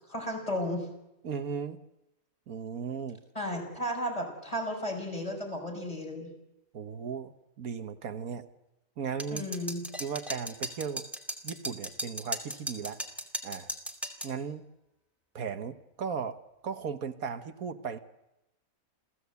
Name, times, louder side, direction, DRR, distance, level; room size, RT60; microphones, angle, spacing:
voice 1, 0.1-0.9 3.3-6.3 9.3-9.8, equal, 25° left, 2 dB, 5.8 m, -34 dB
voice 2, 1.2-1.8 2.5-3.2 6.7-7.3 7.6-8.4 9.0-9.5 10.0-11.1 11.4-13.0 13.4-13.7 14.2-14.6 15.3-16.4 16.6-18.0, right 6 dB, 80° right, 8 dB, 1.6 m, -36 dB
sound 1, 9.2-14.3, right 1 dB, ahead, 2.6 m, -37 dB
29.0 x 16.5 x 8.2 m, 0.91 s
omnidirectional pair, 1.5 m